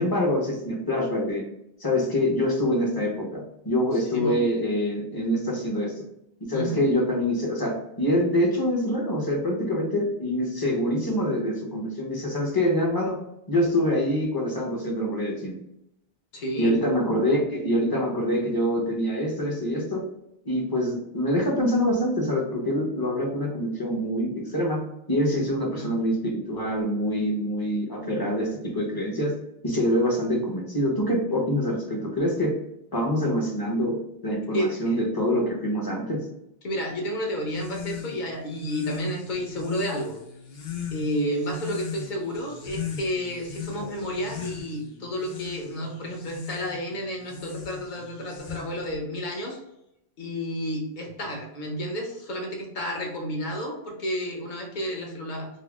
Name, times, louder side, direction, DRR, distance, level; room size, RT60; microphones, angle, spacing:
voice 1, 0.0-1.4 1.8-5.9 6.5-13.2 13.5-15.5 16.6-20.0 20.4-24.8 25.1-29.3 29.6-32.5 32.9-34.0 34.2-36.2 43.8-43.9, equal, 25° left, -2 dB, 0.7 m, -25 dB
voice 2, 4.1-4.4 6.5-6.8 16.3-16.8 25.7-25.9 34.5-35.0 36.6-40.2 40.9-49.6 50.2-55.5, equal, 50° left, 1 dB, 0.9 m, -31 dB
sound 1, 37.4-49.0, left 8 dB, 80° left, 0.9 m, -39 dB
3.5 x 2.0 x 3.5 m, 0.82 s
omnidirectional pair, 1.0 m